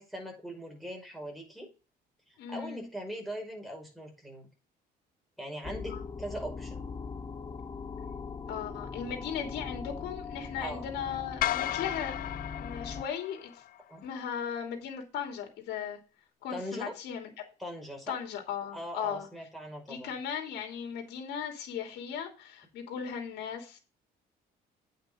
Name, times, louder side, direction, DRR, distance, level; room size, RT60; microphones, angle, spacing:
voice 1, 0.0-1.7 2.3-4.5 5.4-6.9 10.6-10.8 13.9-14.0 16.5-16.9 17.6-18.2 18.7-20.1, equal, ahead, 0 dB, 5.4 m, -40 dB
voice 2, 2.4-2.9 5.9-6.0 8.5-12.2 12.6-13.6 14.0-16.0 16.4-17.3 18.1-19.3 19.9-23.8, left 8 dB, 80° left, 3 dB, 3.0 m, -37 dB
sound 1, 5.6-13.0, left 5 dB, 25° left, 1.3 m, -40 dB
sound 2, 11.4-13.8, left 12 dB, 55° left, 0.5 m, -34 dB
8.9 x 5.9 x 5.2 m, 0.32 s
cardioid pair, 110°, 17 cm